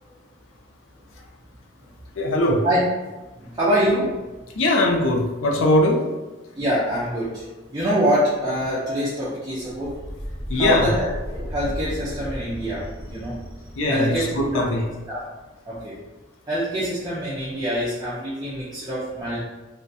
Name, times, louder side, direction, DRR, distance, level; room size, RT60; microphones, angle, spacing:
voice 1, 2.2-2.7 4.5-6.1 10.5-10.9 13.8-14.8, left 1 dB, 80° left, 0 dB, 0.4 m, -20 dB
voice 2, 3.4-4.2 6.5-10.0 10.5-13.4 13.9-14.7 15.1-15.2 15.7-15.9 16.5-19.4, equal, 20° right, -9 dB, 0.4 m, -25 dB
sound 1, 9.6-15.2, equal, 20° left, 1.2 m, -35 dB
2.4 x 2.1 x 2.6 m, 1.1 s
head